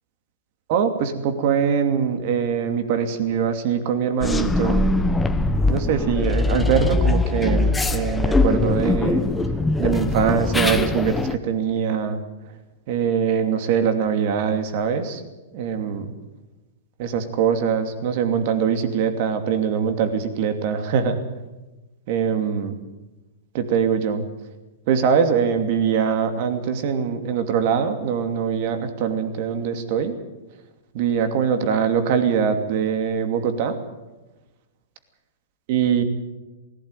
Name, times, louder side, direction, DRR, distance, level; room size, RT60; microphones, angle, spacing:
voice 1, 0.7-4.9 5.7-9.3 9.8-12.2 12.9-15.2 15.5-16.0 17.0-21.2 22.1-22.7 23.5-24.2 24.9-30.1 30.9-33.8 35.7-36.0, right 7 dB, 50° right, 7 dB, 2.7 m, -22 dB
sound 1, 4.2-11.4, left 2 dB, 5° left, 1.0 m, -21 dB
18.0 x 17.0 x 9.2 m, 1.1 s
hypercardioid pair, 145°, 0 cm